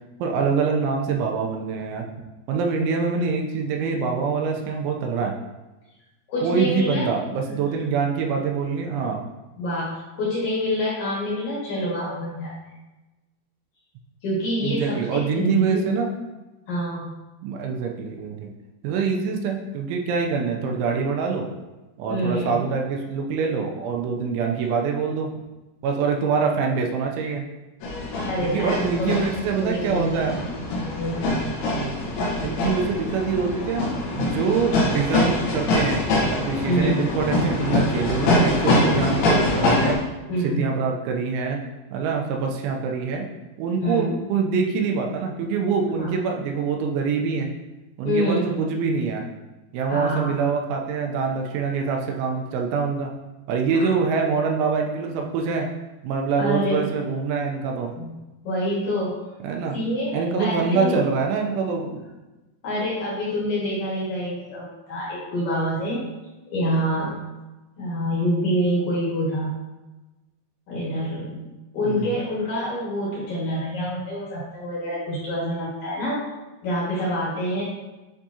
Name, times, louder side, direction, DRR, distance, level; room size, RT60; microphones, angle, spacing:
voice 1, 0.2-2.1 2.5-5.3 6.4-9.2 14.6-16.1 17.4-18.5 18.8-21.5 22.0-25.3 25.8-27.4 28.4-30.3 31.7-31.9 32.4-33.9 34.1-40.0 40.4-41.6 41.9-43.3 43.6-47.5 48.0-49.3 49.7-53.1 53.5-55.7 56.0-57.9 59.4-59.8 60.1-62.0 71.8-72.2, right 5 dB, 85° right, 1 dB, 3.0 m, -25 dB
voice 2, 6.3-7.1 7.5-7.6 9.6-12.5 14.2-15.9 16.7-17.1 22.1-22.6 28.2-29.1 29.6-30.4 31.0-31.4 36.7-36.9 40.3-40.7 43.8-44.1 46.0-46.1 48.0-48.5 49.9-50.3 53.7-53.9 56.4-56.9 58.0-58.2 58.4-59.1 59.7-61.0 62.6-66.0 66.5-67.2 67.8-69.5 70.7-71.5 71.7-76.2 76.6-77.6, equal, 50° left, -7 dB, 2.5 m, -26 dB
sound 1, 27.8-40.0, left 2 dB, 75° left, 3.5 m, -24 dB
9.9 x 3.6 x 2.8 m, 1.1 s
omnidirectional pair, 5.4 m